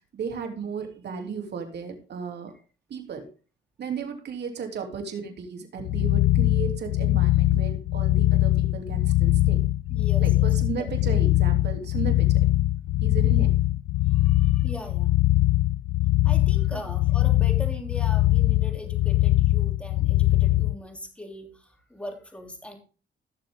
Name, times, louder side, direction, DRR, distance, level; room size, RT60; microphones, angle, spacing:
voice 1, 0.1-2.5 2.9-3.3 3.8-9.6 10.2-12.5 13.0-13.6 16.7-16.8, right 6 dB, 60° right, 4 dB, 3.2 m, -35 dB
sound 1, 5.8-20.8, left 16 dB, 85° left, 0.4 m, -22 dB
voice 2, 9.9-11.1 13.2-13.5 14.1-15.1 16.2-22.8, equal, 5° left, 2 dB, 3.4 m, -41 dB
16.5 x 7.0 x 3.8 m, 0.35 s
cardioid pair, 90°, 20 cm